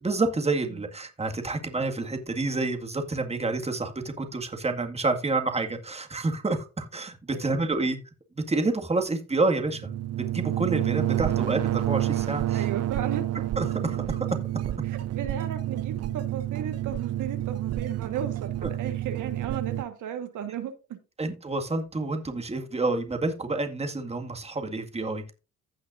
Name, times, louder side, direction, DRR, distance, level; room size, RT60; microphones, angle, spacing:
voice 1, 0.0-8.0 8.3-9.9 10.2-12.6 13.6-14.3 21.2-25.3, right 3 dB, 20° right, 1.9 m, -28 dB
voice 2, 7.3-7.7 12.5-13.3 14.8-21.0, right 9 dB, 80° right, 1.6 m, -35 dB
sound 1, 9.7-19.8, right 13 dB, 55° right, 0.6 m, -29 dB
15.5 x 5.9 x 2.6 m
cardioid pair, 90°, 30 cm